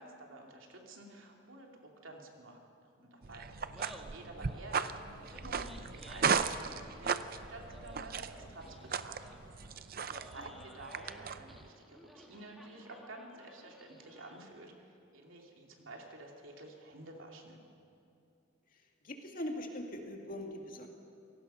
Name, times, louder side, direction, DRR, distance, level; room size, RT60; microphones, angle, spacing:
voice 1, 0.0-2.6 3.0-9.2 9.9-17.6, right 2 dB, 70° right, 1 dB, 2.9 m, -51 dB
sound 1, 3.2-11.7, right 6 dB, 45° right, 0.6 m, -36 dB
Laughter, 3.6-14.6, equal, ahead, 1.7 m, -57 dB
sound 2, 4.7-9.8, equal, 20° right, 6.8 m, -53 dB
voice 2, 19.0-20.9, left 1 dB, 40° left, 2 dB, 2.2 m, -41 dB
28.5 x 18.0 x 5.7 m, 2.6 s
head